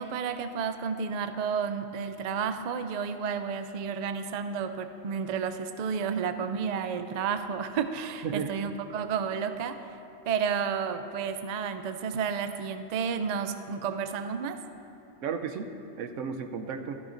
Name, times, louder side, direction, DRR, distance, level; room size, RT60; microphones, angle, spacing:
voice 1, 0.0-9.8 10.3-14.6, right 6 dB, 65° right, 9 dB, 0.4 m, -31 dB
voice 2, 15.2-17.0, right 6 dB, 90° right, 7 dB, 1.0 m, -34 dB
13.0 x 13.0 x 2.6 m, 2.8 s
omnidirectional pair, 1.3 m